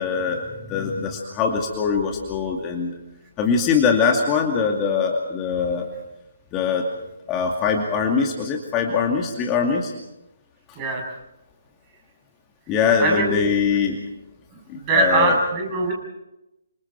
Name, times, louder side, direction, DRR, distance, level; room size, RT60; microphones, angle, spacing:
voice 1, 0.0-2.9 3.4-5.9 6.5-6.9 7.3-9.9 12.7-14.0 14.7-15.4, left 5 dB, 20° left, 1 dB, 2.4 m, -22 dB
voice 2, 13.0-13.5 14.5-15.9, right 2 dB, 25° right, 0 dB, 7.9 m, -22 dB
28.5 x 27.0 x 4.6 m, 0.92 s
figure-of-eight pair, 135°, 0 cm